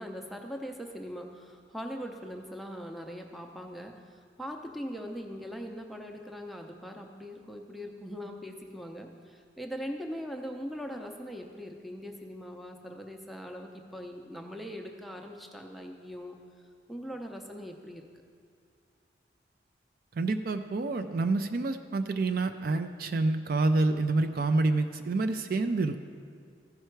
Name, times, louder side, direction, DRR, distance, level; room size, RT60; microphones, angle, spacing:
voice 1, 0.0-16.4 16.9-18.1, equal, ahead, 2 dB, 0.5 m, -41 dB
voice 2, 20.2-26.0, right 3 dB, 55° right, 8 dB, 0.4 m, -28 dB
14.0 x 5.6 x 4.5 m, 2.3 s
head